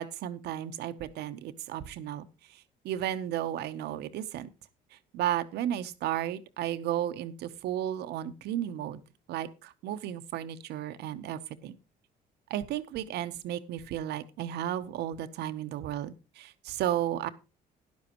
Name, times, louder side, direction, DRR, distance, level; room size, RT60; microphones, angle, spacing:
voice 1, 0.0-2.3 2.8-4.5 5.1-9.0 9.3-11.8 12.5-17.3, right 11 dB, 75° right, 11 dB, 1.0 m, -33 dB
12.5 x 10.5 x 3.0 m, 0.28 s
cardioid pair, 110°, 17 cm